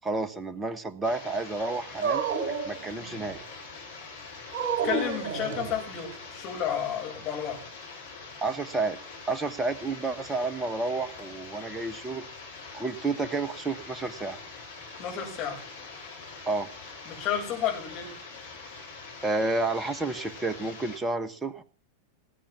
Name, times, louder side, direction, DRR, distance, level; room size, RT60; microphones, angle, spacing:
voice 1, 0.0-3.4 8.4-9.0 9.3-12.3 12.7-14.4 16.4-16.7 19.2-21.6, right 3 dB, 15° right, 12 dB, 1.4 m, -30 dB
sound 1, 1.0-21.0, left 4 dB, 65° left, 6.3 m, -44 dB
Dog, 2.0-3.4 4.5-6.1, right 5 dB, 50° right, 5.3 m, -30 dB
voice 2, 4.8-7.6 15.0-15.6 17.1-18.1, left 9 dB, 35° left, 0 dB, 7.5 m, -31 dB
19.5 x 8.9 x 7.4 m, 0.41 s
figure-of-eight pair, 90°, 0 cm